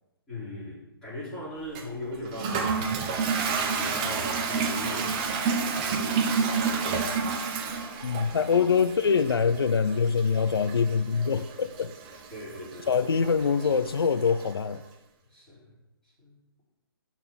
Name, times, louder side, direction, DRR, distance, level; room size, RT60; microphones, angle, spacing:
voice 1, 0.3-5.4 5.8-7.4 12.3-13.0 15.3-15.7 16.0-16.3, left 1 dB, 5° left, 4.3 m, -40 dB
Toilet flush, 1.8-14.5, right 5 dB, 20° right, 0.7 m, -30 dB
voice 2, 8.0-11.9 12.9-14.8, left 6 dB, 80° left, 0.6 m, -24 dB
12.0 x 4.5 x 7.1 m
hypercardioid pair, 165°, 12 cm